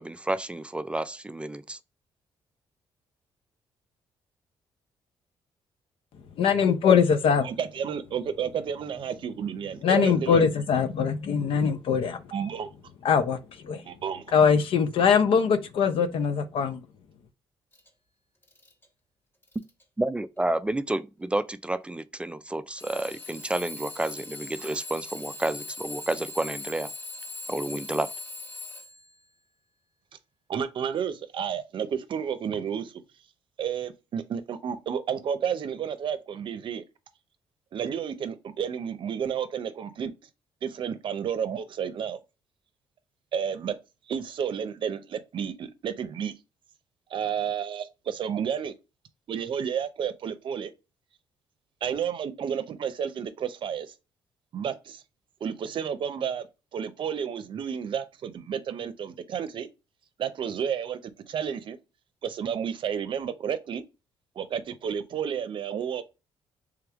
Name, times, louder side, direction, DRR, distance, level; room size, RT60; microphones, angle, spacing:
voice 1, 0.0-1.8 20.0-26.9 27.5-28.1, right 2 dB, 10° right, 0.3 m, -30 dB
voice 2, 6.4-7.5 9.8-12.2 13.0-13.4 13.7-13.8 14.3-16.8, left 6 dB, 70° left, 0.6 m, -22 dB
voice 3, 7.4-10.4 12.3-12.7 13.9-14.2 30.5-32.9 33.6-36.8 37.7-40.1 40.6-42.2 43.3-43.7 44.1-46.3 47.1-48.7 49.3-50.7 51.8-53.9 54.5-55.0 55.4-56.5 56.7-59.7 60.2-61.8 62.2-63.8 64.4-66.1, right 8 dB, 60° right, 0.6 m, -31 dB
Alarm / Clock, 17.7-17.9 18.4-18.9 19.4-19.8 20.7-20.8 22.8-29.2, left 2 dB, 25° left, 1.2 m, -40 dB
3.4 x 3.4 x 3.5 m
cardioid pair, 90°, 10 cm